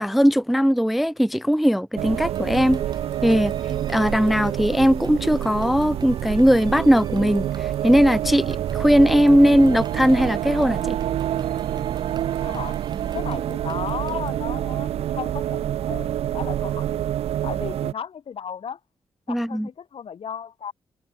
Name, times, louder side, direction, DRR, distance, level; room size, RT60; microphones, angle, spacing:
voice 1, 0.0-2.8 3.2-3.5 3.9-11.0 19.3-19.7, equal, ahead, 0.3 m, -19 dB
sound 1, 2.0-17.9, right 11 dB, 85° right, 0.8 m, -27 dB
sound 2, 2.2-14.5, right 5 dB, 45° right, 1.6 m, -42 dB
voice 2, 12.4-12.8 13.1-17.2 17.4-18.8 19.3-20.7, left 7 dB, 65° left, 4.7 m, -35 dB
cardioid pair, 65°, 10 cm